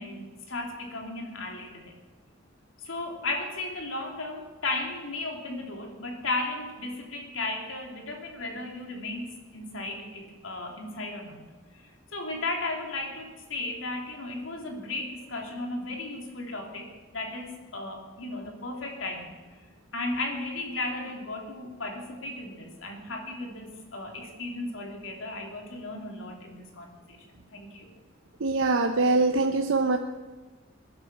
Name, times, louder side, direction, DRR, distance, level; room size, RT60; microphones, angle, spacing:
voice 1, 0.0-2.0 2.8-11.5 11.7-19.4 19.9-27.9, left 2 dB, 90° left, 2 dB, 3.0 m, -35 dB
voice 2, 28.4-30.0, right 3 dB, 85° right, 5 dB, 0.8 m, -23 dB
20.0 x 10.5 x 6.1 m, 1.3 s
head